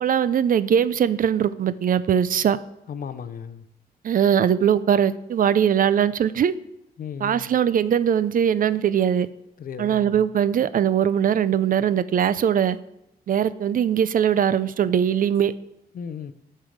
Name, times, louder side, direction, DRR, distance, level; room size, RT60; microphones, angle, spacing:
voice 1, 0.0-2.6 4.0-6.5 7.2-9.3 9.8-12.8 13.3-15.5, right 9 dB, 55° right, 0.4 m, -21 dB
voice 2, 2.9-3.6 7.0-7.6 9.6-10.3 15.9-16.3, left 7 dB, 60° left, 0.6 m, -35 dB
9.0 x 5.6 x 5.0 m
cardioid pair, 105°, 17 cm